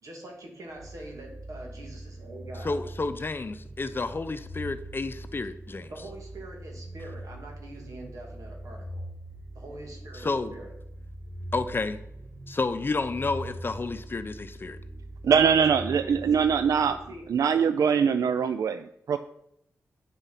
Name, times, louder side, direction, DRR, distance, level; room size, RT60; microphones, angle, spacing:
voice 1, 0.0-2.8 5.9-9.1 9.5-10.7 15.4-16.6 16.9-17.3 18.0-18.1, right 1 dB, 70° right, 2.6 m, -44 dB
sound 1, 0.8-17.6, right 1 dB, 40° right, 1.5 m, -42 dB
voice 2, 2.6-5.9 10.2-10.5 11.5-12.0 12.5-14.8, left 3 dB, 40° left, 0.6 m, -30 dB
voice 3, 15.2-17.0 17.3-19.2, right 6 dB, 85° right, 0.4 m, -23 dB
8.5 x 6.7 x 5.8 m
wide cardioid pair, 90°, 6 cm